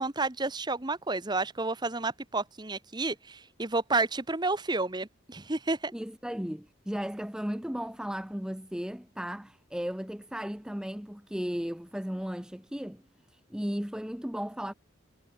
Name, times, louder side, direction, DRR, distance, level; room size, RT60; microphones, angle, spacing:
voice 1, 0.0-5.9, right 3 dB, 20° right, 1.2 m, -30 dB
voice 2, 5.9-13.0 13.3-14.7, equal, 5° right, 0.6 m, -35 dB
head